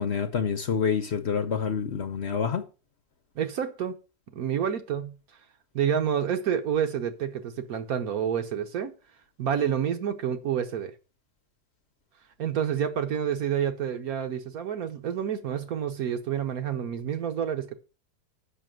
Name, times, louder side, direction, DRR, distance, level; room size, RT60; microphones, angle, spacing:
voice 1, 0.0-2.6, left 6 dB, 50° left, 0.9 m, -27 dB
voice 2, 3.3-4.0 4.3-5.2 5.7-8.9 9.4-10.9 12.4-17.8, right 8 dB, 70° right, 1.4 m, -28 dB
6.8 x 5.8 x 7.5 m
omnidirectional pair, 1.7 m